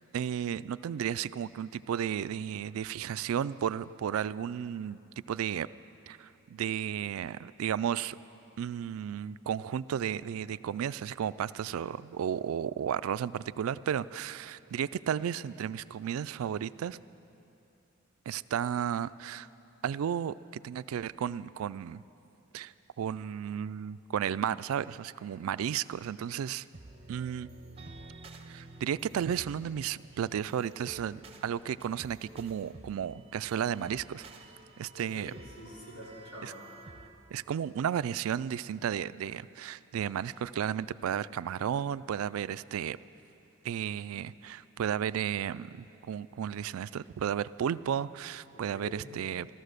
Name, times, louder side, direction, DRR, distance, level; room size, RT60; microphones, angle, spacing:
voice 1, 0.1-5.0 5.3-5.7 6.1-8.2 8.6-17.0 18.3-19.5 19.8-22.0 22.5-26.7 27.1-27.5 28.5-34.3 34.8-35.3 36.4-36.5 37.3-43.0 43.6-49.5, right 9 dB, 85° right, 17 dB, 0.3 m, -33 dB
sound 1, 26.7-37.1, right 2 dB, 25° right, 0.7 m, -51 dB
voice 2, 34.9-36.5 48.5-49.1, equal, 70° left, -6 dB, 4.4 m, -47 dB
14.5 x 14.0 x 6.6 m, 2.8 s
head